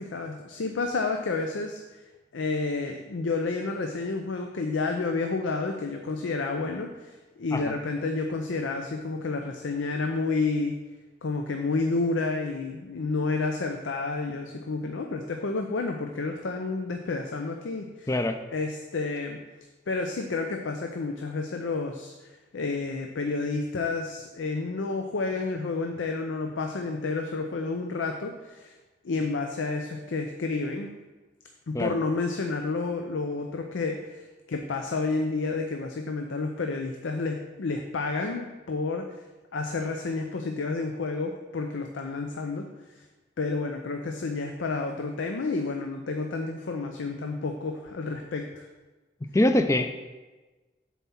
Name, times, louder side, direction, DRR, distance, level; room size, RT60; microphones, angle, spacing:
voice 1, 0.0-1.8 2.3-10.8 11.2-18.1 18.5-19.4 19.9-22.1 22.5-28.7 29.0-30.9 31.7-34.2 34.5-39.0 39.5-42.7 43.4-48.7, left 3 dB, 85° left, 4 dB, 0.5 m, -30 dB
voice 2, 49.3-49.9, left 1 dB, 15° left, 8 dB, 0.4 m, -23 dB
7.2 x 4.2 x 5.8 m, 1.2 s
head